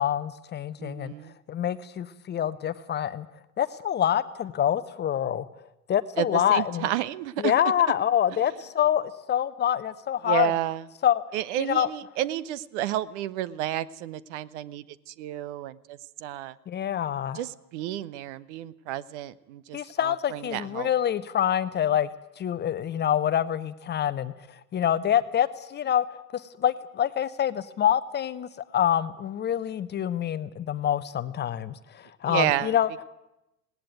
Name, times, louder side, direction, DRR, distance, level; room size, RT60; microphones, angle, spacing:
voice 1, 0.0-1.1 1.5-3.3 3.6-5.5 5.9-6.9 7.4-10.5 11.0-11.2 11.7-11.9 16.7-17.4 19.7-22.1 22.4-24.3 24.7-26.0 26.3-32.9, left 10 dB, 20° left, 14 dB, 0.9 m, -26 dB
voice 2, 0.8-1.4 6.2-7.5 10.2-10.9 11.3-16.6 17.3-20.9 32.2-32.7, right 13 dB, 50° right, 18 dB, 1.1 m, -31 dB
19.0 x 18.5 x 9.2 m, 0.89 s
figure-of-eight pair, 90°, 46 cm